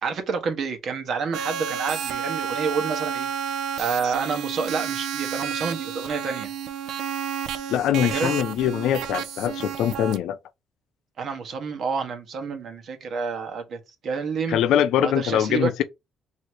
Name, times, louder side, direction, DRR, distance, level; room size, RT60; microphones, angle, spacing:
voice 1, 0.0-6.5 8.1-8.3 11.2-14.6 15.0-15.7, right 5 dB, 65° right, 1.0 m, -29 dB
sound 1, 1.3-10.2, right 8 dB, 85° right, 0.5 m, -31 dB
voice 2, 7.7-10.4 14.5-15.8, left 10 dB, 85° left, 0.4 m, -23 dB
3.2 x 2.7 x 4.5 m
cardioid pair, 90°, 0 cm